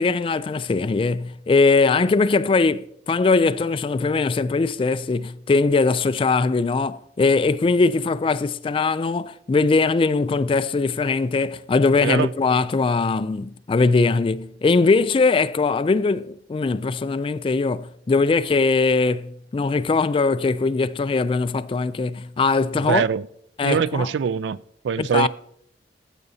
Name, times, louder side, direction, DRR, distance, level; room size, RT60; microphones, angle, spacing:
voice 1, 0.0-23.0 23.6-24.1 25.0-25.3, left 4 dB, 30° left, 0.3 m, -21 dB
voice 2, 22.9-23.2 23.6-24.6 24.8-25.3, right 6 dB, 75° right, 0.3 m, -22 dB
13.5 x 7.9 x 2.7 m
head